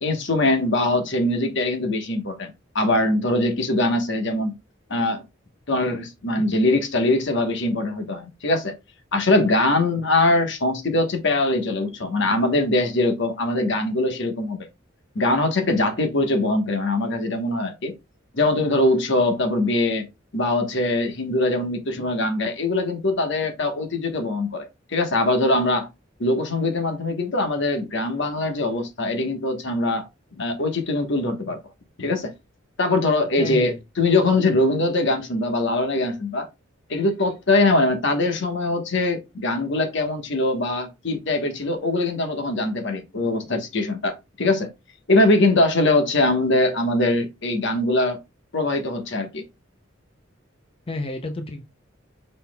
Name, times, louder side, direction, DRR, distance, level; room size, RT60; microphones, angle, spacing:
voice 1, 0.0-4.5 4.9-5.2 5.7-8.7 9.1-14.6 15.1-17.9 18.3-20.1 20.3-25.9 26.2-30.1 30.4-31.6 32.0-32.3 32.8-36.5 36.9-44.7 45.1-48.2 48.5-49.4, left 2 dB, 65° left, 1.2 m, -22 dB
voice 2, 33.4-33.8 50.9-51.6, left 2 dB, 30° left, 0.5 m, -30 dB
5.5 x 4.2 x 2.2 m
head